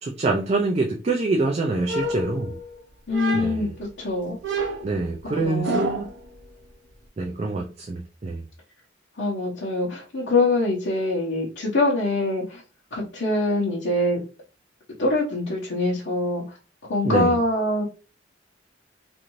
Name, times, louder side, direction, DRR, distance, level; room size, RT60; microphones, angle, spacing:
voice 1, 0.0-2.6 3.3-3.7 4.8-6.1 7.2-8.4 17.0-17.4, right 3 dB, 35° right, 0.3 m, -25 dB
sound 1, 1.9-2.7 3.1-3.8 4.4-6.2, right 2 dB, 70° right, 0.7 m, -29 dB
voice 2, 3.1-4.4 5.3-5.8 9.2-12.6 12.9-14.2 15.0-16.4 16.9-17.9, left 2 dB, 70° left, 0.8 m, -24 dB
2.6 x 2.5 x 2.9 m
head